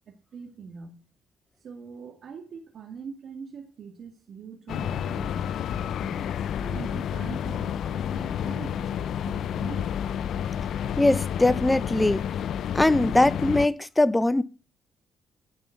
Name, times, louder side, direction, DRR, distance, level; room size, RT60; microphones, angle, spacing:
voice 1, 0.1-1.0 1.6-6.3 6.6-9.9, right 6 dB, 60° right, 2.1 m, -42 dB
sound 1, 4.7-13.7, left 9 dB, 70° left, 0.6 m, -30 dB
voice 2, 11.0-12.2 12.7-14.4, left 2 dB, 10° left, 0.9 m, -21 dB
16.5 x 5.6 x 6.6 m
cardioid pair, 100°, 0 cm